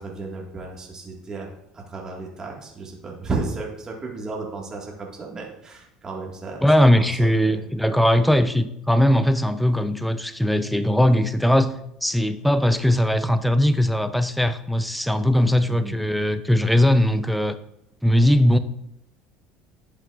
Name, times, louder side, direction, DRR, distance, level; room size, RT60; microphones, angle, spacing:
voice 1, 0.0-1.5 1.7-6.7 6.9-7.7 8.2-8.3 15.1-16.0, right 3 dB, 25° right, -1 dB, 1.6 m, -34 dB
voice 2, 6.6-11.8 12.0-17.6 18.0-18.6, left 1 dB, ahead, 11 dB, 0.4 m, -19 dB
11.0 x 5.8 x 2.4 m, 0.77 s
supercardioid pair, 100°, 2 cm